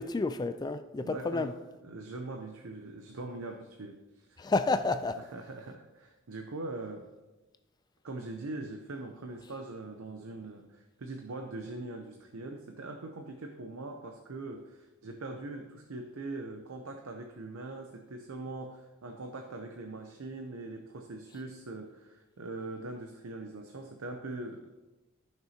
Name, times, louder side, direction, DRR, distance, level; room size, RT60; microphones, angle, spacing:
voice 1, 0.0-1.5 4.4-5.2, left 3 dB, 20° left, 0.3 m, -30 dB
voice 2, 1.0-4.5 5.2-7.1 8.0-24.7, right 2 dB, 85° right, 0.7 m, -42 dB
13.5 x 6.0 x 2.8 m
head